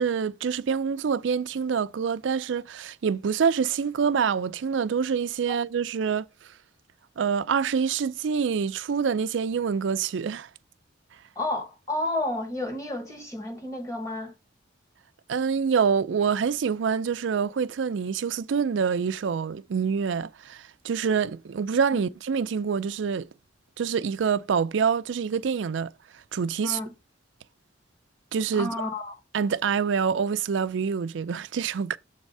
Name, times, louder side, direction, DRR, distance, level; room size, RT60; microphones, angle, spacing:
voice 1, 0.0-6.3 7.2-10.5 15.3-23.3 23.8-25.9 26.3-26.8 28.3-28.7 29.3-32.0, right 6 dB, 70° right, 0.4 m, -26 dB
voice 2, 11.3-14.3 21.9-22.0 26.6-26.9 28.5-29.2, left 2 dB, 15° left, 1.4 m, -31 dB
7.2 x 3.5 x 5.4 m
head